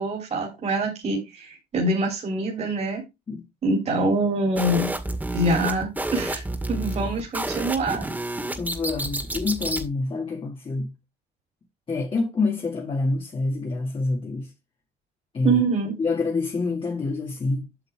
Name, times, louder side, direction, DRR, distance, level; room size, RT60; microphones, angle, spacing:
voice 1, 0.0-3.0 3.6-4.9 5.3-6.4 6.7-8.1 15.4-15.9, right 2 dB, 40° right, 3.2 m, -25 dB
sound 1, 4.6-9.9, right 2 dB, 10° right, 2.0 m, -30 dB
voice 2, 8.6-10.9 11.9-14.5 15.3-15.6 16.0-17.7, left 3 dB, 30° left, 2.2 m, -27 dB
8.2 x 6.7 x 3.5 m
cardioid pair, 110°, 17 cm